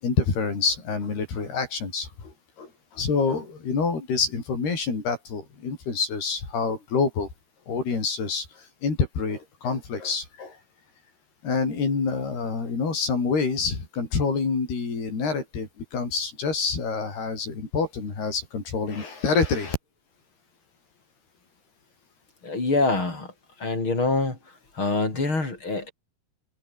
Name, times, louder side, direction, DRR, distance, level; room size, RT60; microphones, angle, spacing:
voice 1, 0.0-7.3 7.7-10.6 11.4-19.8, left 4 dB, 85° left, 8.8 m, -27 dB
voice 2, 22.4-23.3 23.6-24.4 24.7-25.9, left 3 dB, 30° left, 7.2 m, -25 dB
omnidirectional pair, 4.4 m